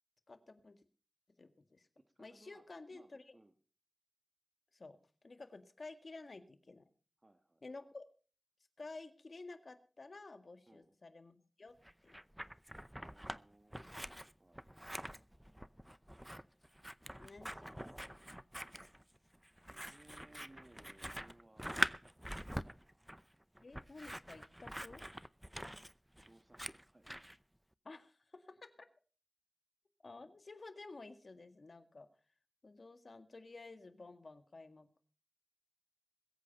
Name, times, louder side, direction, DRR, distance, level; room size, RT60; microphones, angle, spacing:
voice 1, 0.3-0.8 1.4-1.9 2.2-3.4 4.7-5.0 5.2-6.9 7.6-8.1 8.8-11.7 12.0-12.2 17.2-18.2 23.6-25.0 27.8-28.6 30.0-32.1 32.6-35.0, left 3 dB, 70° left, 9 dB, 1.8 m, -52 dB
voice 2, 2.0-3.5 7.2-7.8 10.7-11.0 12.9-13.9 14.4-14.7 19.7-23.1 25.4-27.2, right 1 dB, 35° right, 8 dB, 1.4 m, -65 dB
Scissors, 11.8-13.4 13.7-27.4, equal, 10° right, 0.6 m, -44 dB
21.0 x 8.5 x 5.3 m, 0.39 s
wide cardioid pair, 50°, 0 cm